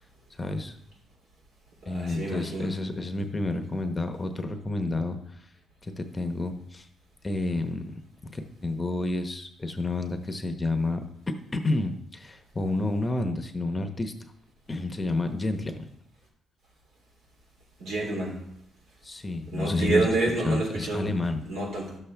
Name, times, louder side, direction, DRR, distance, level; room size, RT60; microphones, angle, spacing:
voice 1, 0.3-0.7 1.8-5.5 5.8-6.9 7.2-7.9 8.2-14.1 14.7-15.8 19.0-20.1 20.4-21.4, left 2 dB, 20° left, 6 dB, 0.9 m, -30 dB
voice 2, 1.9-2.7 17.8-18.4 19.5-21.0 21.5-22.0, right 2 dB, 80° right, -2 dB, 3.4 m, -28 dB
11.0 x 7.1 x 3.4 m, 0.76 s
cardioid pair, 90°, 0 cm